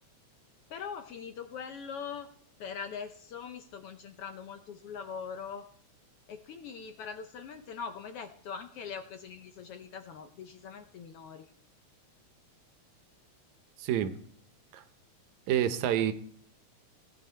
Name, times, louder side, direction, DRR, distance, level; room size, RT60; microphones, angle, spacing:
voice 1, 0.7-2.3 2.6-5.7 6.3-11.5, left 6 dB, 70° left, 7 dB, 1.4 m, -42 dB
voice 2, 13.8-14.2 14.7-14.8 15.5-16.1, right 10 dB, 80° right, 10 dB, 2.1 m, -28 dB
17.5 x 10.0 x 4.3 m, 0.62 s
omnidirectional pair, 3.4 m